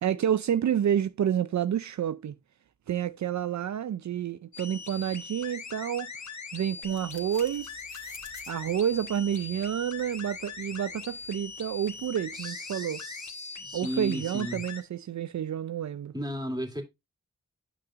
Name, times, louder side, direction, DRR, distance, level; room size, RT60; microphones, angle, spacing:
voice 1, 0.0-2.3 2.9-6.1 6.5-7.8 8.5-13.0 13.7-16.1, right 9 dB, 75° right, 0.4 m, -29 dB
sound 1, 4.5-14.8, left 5 dB, 75° left, 1.3 m, -41 dB
sound 2, 6.8-12.4, left 2 dB, 40° left, 2.5 m, -54 dB
voice 2, 12.3-14.6 16.1-16.8, equal, 15° right, 2.4 m, -35 dB
9.1 x 6.0 x 2.4 m
wide cardioid pair, 70°, 29 cm